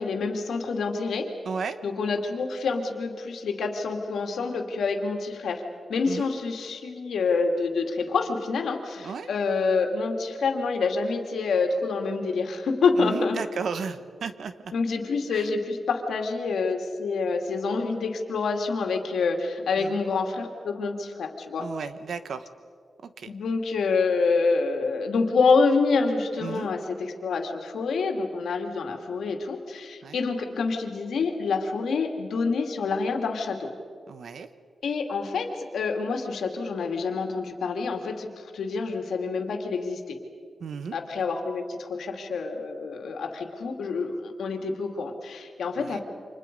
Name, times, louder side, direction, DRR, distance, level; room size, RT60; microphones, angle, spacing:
voice 1, 0.0-1.3 1.8-5.6 5.9-13.4 14.7-21.7 23.3-33.7 34.8-40.2 40.9-46.0, left 4 dB, 85° left, 4 dB, 2.5 m, -27 dB
voice 2, 1.4-1.8 6.1-6.3 9.0-9.3 13.0-14.7 15.3-15.5 19.8-20.0 21.6-22.5 23.0-23.3 26.4-26.7 30.0-30.2 34.1-34.5 40.6-41.0 45.8-46.0, right 5 dB, 65° right, 11 dB, 1.1 m, -34 dB
30.0 x 26.0 x 5.4 m, 2.2 s
wide cardioid pair, 160°, 0 cm